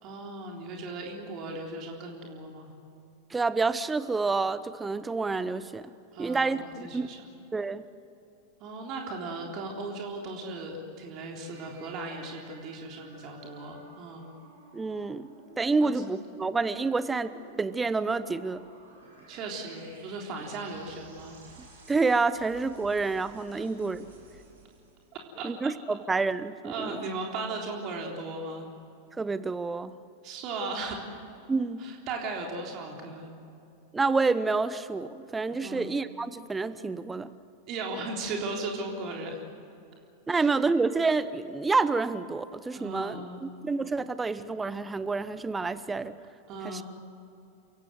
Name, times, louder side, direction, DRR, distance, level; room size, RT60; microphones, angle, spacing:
voice 1, 0.0-2.7 6.1-7.3 8.6-14.3 15.8-15.9 19.3-21.4 23.5-23.7 25.4-25.7 26.6-28.7 30.2-31.0 31.8-33.3 35.6-35.9 37.7-39.4 40.3-40.5 42.7-43.5 46.5-46.8, right 3 dB, 40° right, 1 dB, 3.6 m, -37 dB
voice 2, 3.3-5.8 6.2-7.1 7.5-7.8 14.7-15.3 15.6-18.6 21.9-24.1 25.4-27.0 29.2-29.9 31.5-31.8 33.9-37.3 40.3-46.1 46.6-46.8, right 4 dB, 10° right, 15 dB, 0.8 m, -28 dB
sound 1, 11.4-25.2, right 3 dB, 70° right, 6.7 m, -53 dB
29.5 x 16.5 x 7.8 m, 2.7 s
figure-of-eight pair, 90°, 0 cm